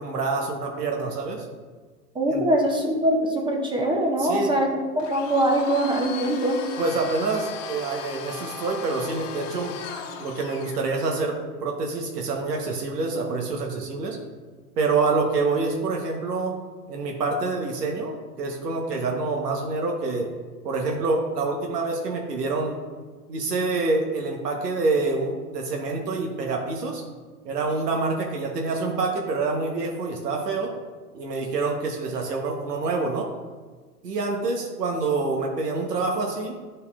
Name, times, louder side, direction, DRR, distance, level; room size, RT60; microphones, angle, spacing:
voice 1, 0.0-1.5 2.3-2.4 4.2-4.5 6.8-9.8 10.2-14.2 14.8-16.6 16.9-20.3 20.6-22.8 23.3-27.0 27.4-30.7 31.1-33.3 34.0-36.5, right 3 dB, 85° right, 1 dB, 1.1 m, -26 dB
voice 2, 2.1-4.7 5.0-6.6, right 1 dB, 10° right, 1 dB, 0.5 m, -22 dB
Domestic sounds home sounds, 5.0-10.9, left 6 dB, 55° left, 1.0 m, -37 dB
9.8 x 5.3 x 2.4 m, 1.4 s
hypercardioid pair, 120°, 46 cm